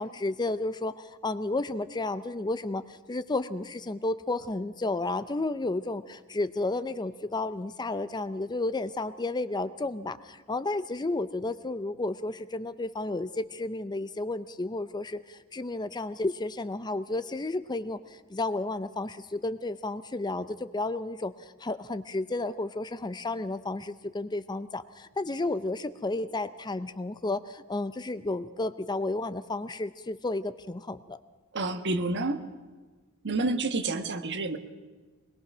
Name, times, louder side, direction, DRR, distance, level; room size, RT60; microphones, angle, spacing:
voice 1, 0.0-18.0 18.3-21.3 21.6-31.2, left 2 dB, 20° left, 13 dB, 0.6 m, -32 dB
voice 2, 31.5-32.4 33.2-34.6, right 2 dB, 55° right, 9 dB, 1.4 m, -29 dB
23.0 x 21.0 x 6.1 m, 1.4 s
head